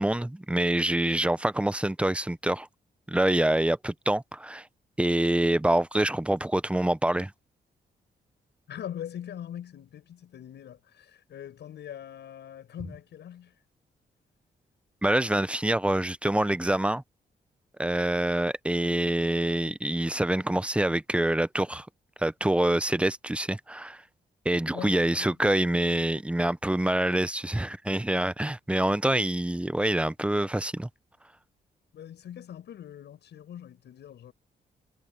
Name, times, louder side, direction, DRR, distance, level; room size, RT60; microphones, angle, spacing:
voice 1, 0.0-2.7 3.1-4.7 5.0-7.3 15.0-17.0 17.8-21.9 22.2-24.0 24.4-30.9, right 1 dB, 5° right, 0.7 m, -26 dB
voice 2, 8.7-13.5 24.7-25.4 31.9-34.3, left 10 dB, 85° left, 7.0 m, -42 dB
cardioid pair, 80°, 17 cm